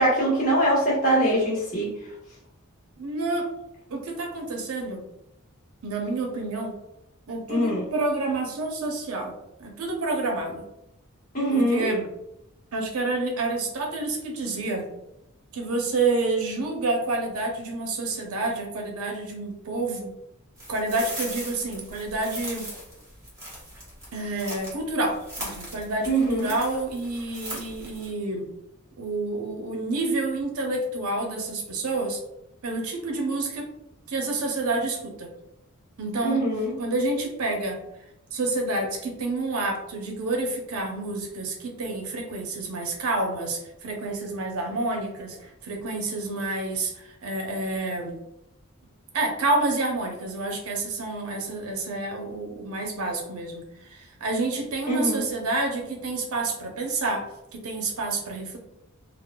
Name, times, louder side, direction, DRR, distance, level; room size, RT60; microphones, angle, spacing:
voice 1, 0.0-1.9 7.5-7.8 11.3-11.9 26.0-26.5 36.2-36.7 54.9-55.2, right 1 dB, 35° left, -7 dB, 1.2 m, -22 dB
voice 2, 3.0-3.5 3.9-5.0 5.8-6.8 7.3-9.3 9.6-10.7 11.5-12.1 12.7-14.9 15.5-20.1 20.7-22.7 24.1-28.5 29.0-32.2 32.6-33.7 34.1-35.3 36.0-36.4 36.8-37.8 38.3-48.2 49.1-53.6 53.9-57.3 57.5-58.6, right 2 dB, 85° right, 2 dB, 0.6 m, -28 dB
sound 1, 20.6-24.8 25.1-28.1, right 1 dB, 15° right, 0.9 m, -39 dB
3.7 x 2.0 x 2.2 m, 0.84 s
head